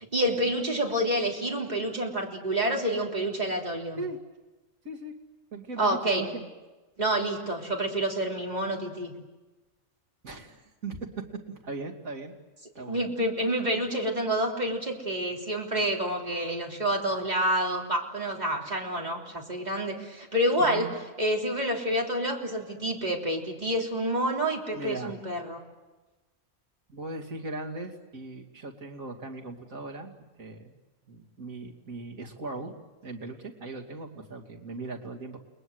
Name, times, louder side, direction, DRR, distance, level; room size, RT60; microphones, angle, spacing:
voice 1, 0.1-4.0 5.8-6.3 7.0-9.2 12.9-20.9 21.2-25.6, right 1 dB, 30° right, 0 dB, 3.5 m, -28 dB
voice 2, 5.5-6.4 10.2-12.3 12.7-13.1 13.8-14.0 20.6-20.9 24.7-25.1 26.9-30.7 31.1-32.7 33.0-35.4, right 3 dB, 80° right, 0 dB, 3.1 m, -38 dB
30.0 x 21.0 x 8.0 m, 1.2 s
omnidirectional pair, 1.4 m